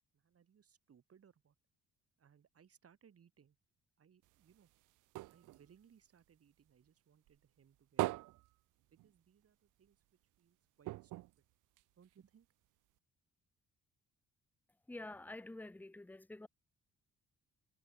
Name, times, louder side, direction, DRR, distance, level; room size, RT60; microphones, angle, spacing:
voice 1, 0.1-1.6 2.2-3.6 4.0-4.7 5.3-8.3 8.9-10.0 10.4-11.4 12.0-12.5, right 7 dB, 50° right, 4.5 m, -67 dB
sound 1, 4.2-6.9 7.3-9.5 9.8-9.9 10.2-10.4 10.8-12.3 13.0-13.1, right 19 dB, 85° right, 0.6 m, -43 dB
voice 2, 14.9-16.5, left 2 dB, 5° left, 0.8 m, -48 dB
cardioid pair, 90°, 30 cm